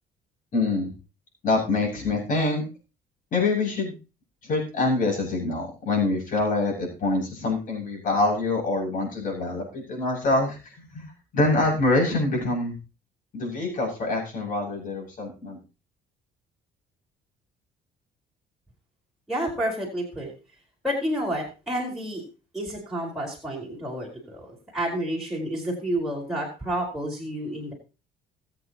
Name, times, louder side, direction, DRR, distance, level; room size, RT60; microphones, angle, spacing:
voice 1, 0.5-0.9 1.4-2.6 3.3-3.9 4.4-11.1 11.3-12.8 13.3-15.6, left 2 dB, 55° left, -1 dB, 7.1 m, -25 dB
voice 2, 19.3-20.3 20.8-22.2 22.5-27.7, right 1 dB, ahead, -5 dB, 4.8 m, -30 dB
21.0 x 8.3 x 3.1 m, 0.32 s
cardioid pair, 110°, 17 cm